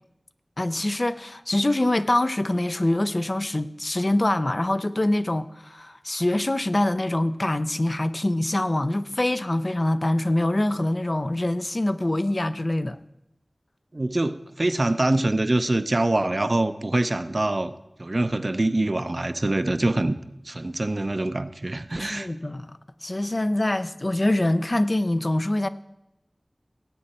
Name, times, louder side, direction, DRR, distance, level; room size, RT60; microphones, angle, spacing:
voice 1, 0.6-13.0 22.0-25.7, left 1 dB, 40° left, 0.6 m, -24 dB
voice 2, 13.9-17.7 18.0-20.2 20.4-22.3, right 2 dB, 50° right, 0.6 m, -24 dB
18.0 x 8.6 x 4.3 m
wide cardioid pair, 55°, 0 cm